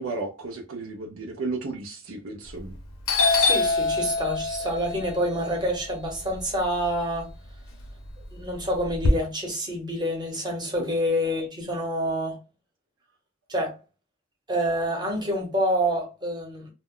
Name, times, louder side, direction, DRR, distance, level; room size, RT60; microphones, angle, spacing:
voice 1, 0.0-2.8 10.8-10.9, right 3 dB, 70° right, 0.5 m, -34 dB
Doorbell, 2.5-2.8 3.1-7.2 7.6-9.1, left 3 dB, 90° left, 0.6 m, -25 dB
voice 2, 3.3-7.3 8.3-12.4 13.5-13.7 14.5-16.7, equal, 20° right, 0.9 m, -27 dB
2.2 x 2.1 x 3.6 m
head